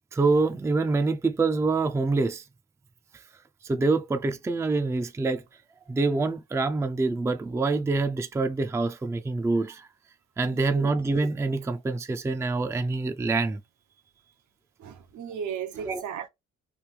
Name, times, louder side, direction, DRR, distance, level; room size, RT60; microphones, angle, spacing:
voice 1, 0.1-2.4 3.6-5.4 5.9-9.9 10.4-13.6 15.9-16.0, right 3 dB, 10° right, 0.4 m, -26 dB
voice 2, 10.4-10.9 14.8-16.3, right 7 dB, 70° right, 0.8 m, -36 dB
3.3 x 2.6 x 3.1 m
cardioid pair, 90°, 30 cm